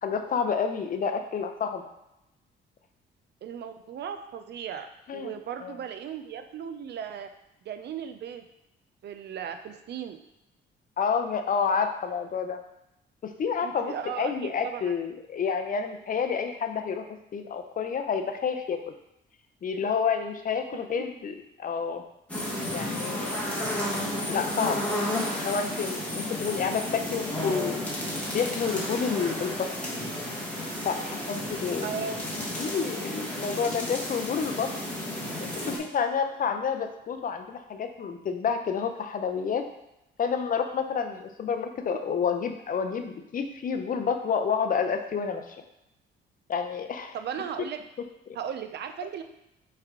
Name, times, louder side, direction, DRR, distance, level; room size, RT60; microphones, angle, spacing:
voice 1, 0.0-1.8 5.1-5.3 5.6-5.8 11.0-12.6 13.2-17.1 17.3-18.8 19.6-22.0 22.7-23.3 24.3-24.9 25.3-27.8 28.3-29.7 30.8-31.9 32.6-34.7 35.6-39.7 40.2-45.6 46.5-47.2 48.3-48.4, left 6 dB, 45° left, 6 dB, 0.5 m, -29 dB
voice 2, 3.4-4.9 5.1-7.3 7.6-8.4 9.0-10.2 13.6-14.9 20.9-21.0 31.8-32.2 41.9-42.0 47.1-47.8 48.3-49.2, right 8 dB, 60° right, 7 dB, 0.5 m, -36 dB
sound 1, 22.3-35.8, left 1 dB, 5° left, 1.3 m, -32 dB
4.4 x 3.3 x 3.6 m, 0.88 s
cardioid pair, 90°, 20 cm